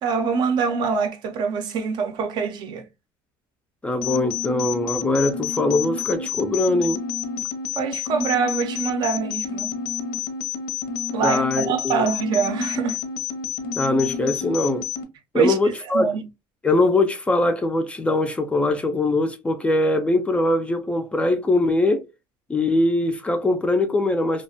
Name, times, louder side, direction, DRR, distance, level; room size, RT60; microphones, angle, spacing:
voice 1, 0.0-2.8 7.7-9.8 11.1-13.0 15.3-15.6 15.9-16.2, right 5 dB, 50° right, 0.5 m, -24 dB
voice 2, 3.8-7.0 11.2-12.1 13.8-14.9 15.3-16.1 16.6-22.1 22.5-24.4, left 2 dB, 10° left, 0.3 m, -22 dB
sound 1, 4.0-15.0, left 7 dB, 85° left, 0.7 m, -29 dB
2.4 x 2.1 x 2.6 m
cardioid pair, 140°, 10 cm